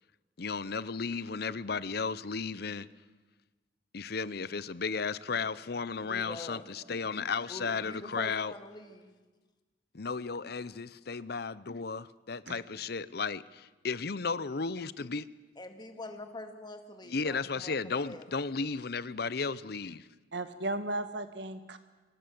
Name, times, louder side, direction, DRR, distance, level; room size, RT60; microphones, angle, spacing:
voice 1, 0.4-2.9 3.9-8.5 9.9-15.3 17.1-20.1, left 4 dB, 60° left, 18 dB, 0.8 m, -34 dB
voice 2, 6.0-6.7 7.5-9.1 15.6-18.7, left 2 dB, 25° left, 6 dB, 2.2 m, -45 dB
voice 3, 20.3-21.8, right 2 dB, 80° right, 10 dB, 1.9 m, -35 dB
25.5 x 19.0 x 7.8 m, 1.2 s
head